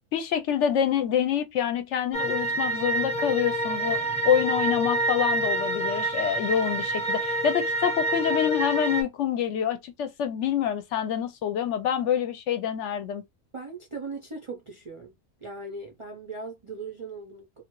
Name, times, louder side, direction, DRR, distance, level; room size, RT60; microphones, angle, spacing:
voice 1, 0.1-13.2, left 9 dB, 70° left, 0.9 m, -26 dB
sound 1, 2.1-9.0, right 2 dB, 5° left, 0.7 m, -27 dB
voice 2, 13.5-15.1 15.4-17.6, right 3 dB, 45° right, 0.4 m, -39 dB
2.7 x 2.4 x 2.9 m
omnidirectional pair, 1.3 m